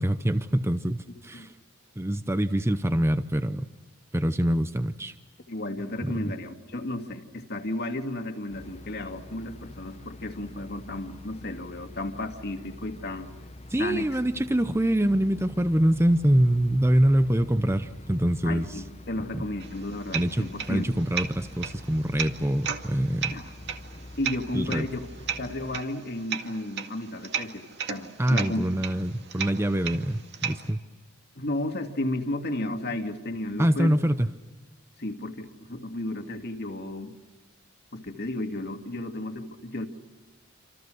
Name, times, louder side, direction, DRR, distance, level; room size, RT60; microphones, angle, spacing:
voice 1, 0.0-1.5 2.0-3.7 4.1-5.1 6.0-6.3 13.7-18.8 19.3-19.4 20.1-23.4 24.5-24.9 28.2-30.8 33.6-34.3, right 1 dB, 15° right, 10 dB, 0.8 m, -25 dB
voice 2, 5.5-13.3 13.8-14.1 18.4-20.9 23.3-23.5 24.2-25.0 25.4-28.7 31.4-34.0 35.0-37.2 37.9-39.9, left 1 dB, 55° left, 5 dB, 2.3 m, -33 dB
sound 1, 8.5-25.8, left 1 dB, 30° left, 1.0 m, -45 dB
sound 2, 19.6-30.7, right 7 dB, 55° right, 2.1 m, -36 dB
28.0 x 27.5 x 6.4 m, 1.3 s
head